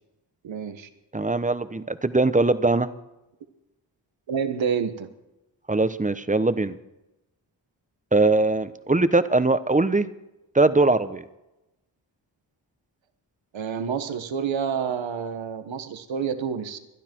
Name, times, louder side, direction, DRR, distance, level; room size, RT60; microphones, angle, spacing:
voice 1, 0.4-0.9 4.3-5.1 13.5-16.8, right 7 dB, 75° right, 9 dB, 1.4 m, -28 dB
voice 2, 1.1-2.9 5.7-6.7 8.1-10.1 10.5-11.2, right 2 dB, 15° right, 13 dB, 1.0 m, -21 dB
21.5 x 12.0 x 4.6 m, 0.94 s
cardioid pair, 50°, 45 cm